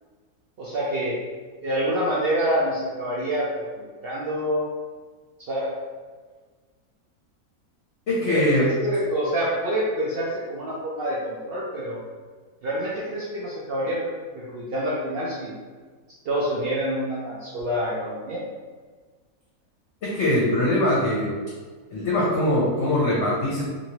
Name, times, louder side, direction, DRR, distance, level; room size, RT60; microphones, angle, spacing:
voice 1, 0.6-1.2 1.6-4.7 5.5-5.7 8.3-12.0 12.6-14.0 14.3-15.5 16.2-18.4, equal, 75° right, -6 dB, 0.5 m, -27 dB
voice 2, 8.1-8.7 20.0-21.3 21.9-23.6, left 1 dB, 60° left, -6 dB, 0.9 m, -22 dB
3.0 x 2.6 x 2.8 m, 1.4 s
omnidirectional pair, 1.7 m